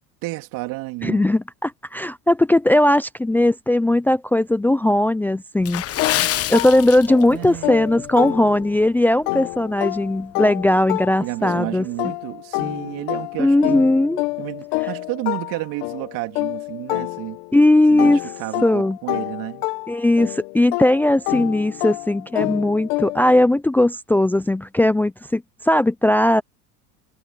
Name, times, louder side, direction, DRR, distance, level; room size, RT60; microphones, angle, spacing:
voice 1, 0.2-1.3 7.3-8.8 11.2-13.8 14.4-17.4 17.9-19.7, right 21 dB, 70° right, 3.2 m, -31 dB
voice 2, 1.0-5.8 6.5-11.8 13.4-14.2 17.5-18.2 18.6-19.0 19.9-26.4, left 1 dB, 5° left, 0.5 m, -18 dB
Water / Splash splatter, 5.6-7.5 7.8-8.0 8.6-8.8 9.3-9.4, left 12 dB, 45° left, 1.2 m, -26 dB
sound 1, 6.0-8.9 9.3-17.6 18.0-23.4, left 23 dB, 75° left, 1.3 m, -28 dB
supercardioid pair, 120°, 34 cm